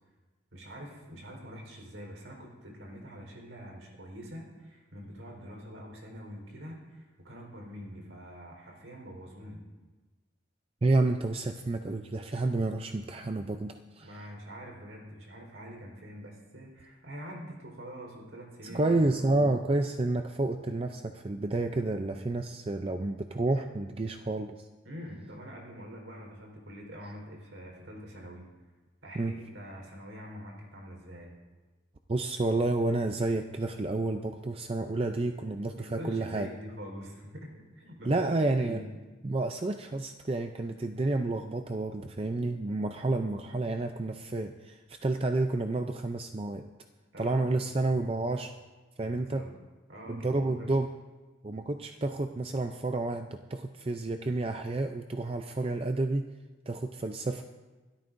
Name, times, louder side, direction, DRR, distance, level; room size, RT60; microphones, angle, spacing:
voice 1, 0.5-9.6 14.0-19.5 24.8-28.5 29.0-31.4 35.7-38.3 38.6-38.9 47.1-47.5 49.1-49.6 49.9-50.8, equal, 85° right, 0 dB, 4.2 m, -45 dB
voice 2, 10.8-14.2 18.6-24.7 29.2-29.3 32.1-36.5 38.0-38.8 39.2-46.7 47.2-48.5 49.0-49.4 50.1-50.9 51.4-56.3 56.7-57.4, right 2 dB, 30° right, 6 dB, 0.5 m, -30 dB
27.0 x 13.0 x 2.6 m, 1.3 s
head